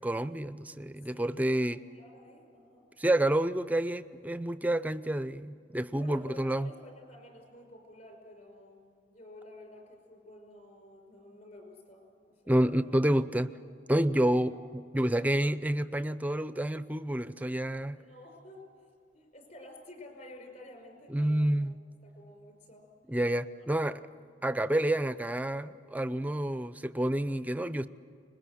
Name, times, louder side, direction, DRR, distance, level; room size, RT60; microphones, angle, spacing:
voice 1, 0.0-1.8 3.0-6.7 12.5-13.5 13.9-18.0 21.1-21.8 23.1-24.0 24.4-27.9, right 1 dB, 10° right, 0.5 m, -29 dB
voice 2, 1.1-2.9 6.0-12.1 12.4-12.9 14.5-14.6 18.0-18.9 19.1-21.7 22.0-22.9 23.6-23.7, left 1 dB, 45° left, 5.4 m, -52 dB
25.5 x 21.0 x 7.8 m
head